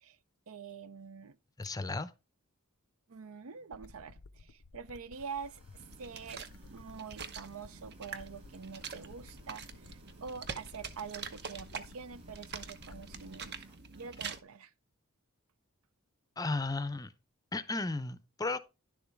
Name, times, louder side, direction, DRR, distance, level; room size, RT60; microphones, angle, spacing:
voice 1, 0.5-1.4 3.1-13.7 13.9-14.7, right 5 dB, 65° right, 0.6 m, -46 dB
voice 2, 1.6-2.1 16.4-17.1 17.5-18.6, left 3 dB, 15° left, 0.6 m, -34 dB
sound 1, 3.7-13.7, left 3 dB, 70° left, 0.6 m, -55 dB
sound 2, 5.1-14.1, right 2 dB, 25° right, 1.8 m, -66 dB
sound 3, 5.8-14.4, right 5 dB, 50° right, 0.9 m, -45 dB
11.0 x 7.1 x 3.5 m
head